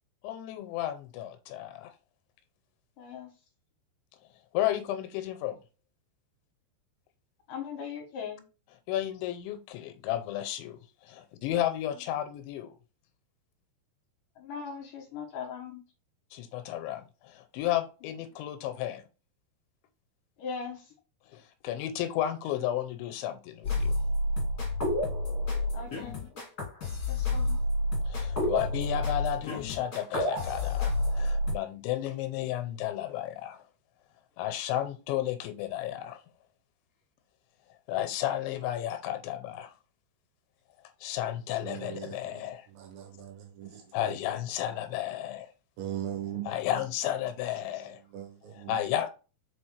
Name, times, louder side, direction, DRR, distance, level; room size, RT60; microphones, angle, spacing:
voice 1, 0.2-1.9 4.5-5.6 8.9-12.7 16.3-19.0 21.3-24.0 28.1-33.6 34.4-36.2 37.9-39.7 41.0-42.7 43.9-45.5 46.3-48.0 48.5-49.1, left 12 dB, 85° left, 3.0 m, -33 dB
voice 2, 3.0-3.3 7.5-8.4 14.4-15.8 18.0-18.1 20.4-20.9 25.7-26.2 27.1-27.6, left 6 dB, 65° left, 2.2 m, -39 dB
sound 1, 23.6-31.5, left 1 dB, 30° left, 1.8 m, -29 dB
voice 3, 41.6-42.2 42.8-43.8 45.8-46.5 48.1-48.7, right 11 dB, 75° right, 3.4 m, -38 dB
6.2 x 5.0 x 3.3 m
omnidirectional pair, 5.3 m